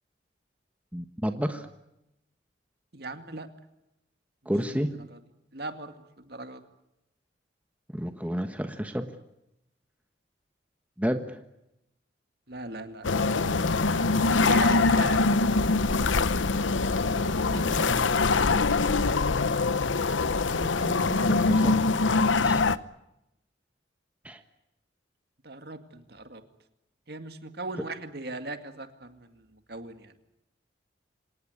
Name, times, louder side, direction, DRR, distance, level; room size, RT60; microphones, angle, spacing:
voice 1, 0.9-1.7 4.4-4.9 7.9-9.1 11.0-11.4 17.5-18.5 20.5-21.8 22.4-22.6 24.2-24.4, equal, 10° right, 6 dB, 1.3 m, -32 dB
voice 2, 2.9-3.5 4.7-4.8 5.1-5.2 5.5-6.6 12.5-13.1 14.4-15.2 25.4-26.4 27.1-30.1, right 2 dB, 55° right, 8 dB, 2.2 m, -38 dB
sound 1, 13.0-22.8, left 3 dB, 85° left, 0.9 m, -23 dB
26.5 x 19.0 x 9.7 m, 0.89 s
head